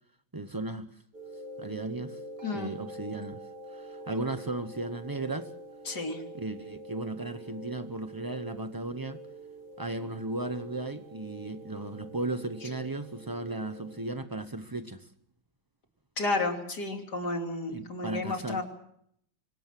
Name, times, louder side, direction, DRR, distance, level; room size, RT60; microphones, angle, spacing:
voice 1, 0.3-1.0 1.6-2.2 2.5-3.4 3.7-5.5 6.3-9.2 9.8-15.1 17.7-18.6, right 2 dB, 30° right, 0.3 m, -35 dB
sound 1, 1.1-14.2, right 2 dB, 60° right, 4.2 m, -46 dB
voice 2, 2.4-2.8 5.9-6.2 16.2-18.6, left 2 dB, 55° left, 3.4 m, -32 dB
25.0 x 16.5 x 7.6 m
omnidirectional pair, 2.1 m